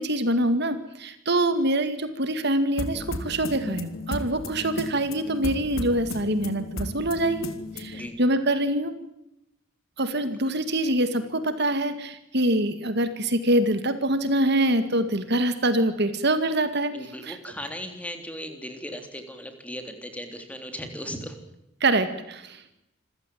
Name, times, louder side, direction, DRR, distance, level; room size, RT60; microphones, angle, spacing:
voice 1, 0.0-7.5 7.8-8.9 10.0-17.4 21.8-22.8, right 1 dB, 55° right, 10 dB, 2.1 m, -25 dB
sound 1, 2.8-8.1, left 2 dB, 80° left, 3.1 m, -35 dB
voice 2, 16.9-21.4, equal, 5° left, 6 dB, 3.4 m, -37 dB
27.0 x 15.5 x 9.2 m, 0.85 s
head